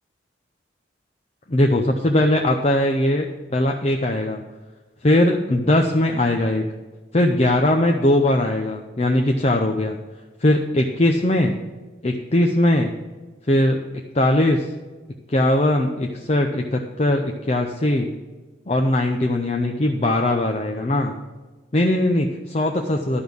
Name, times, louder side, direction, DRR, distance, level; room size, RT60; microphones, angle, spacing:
voice 1, 1.5-3.3 3.5-4.4 5.0-6.6 7.1-10.0 10.4-11.5 12.0-12.9 13.5-13.8 14.1-14.7 15.3-18.1 18.7-21.1 21.7-23.2, left 1 dB, 35° left, 3 dB, 0.6 m, -20 dB
11.5 x 5.3 x 6.3 m, 1.3 s
head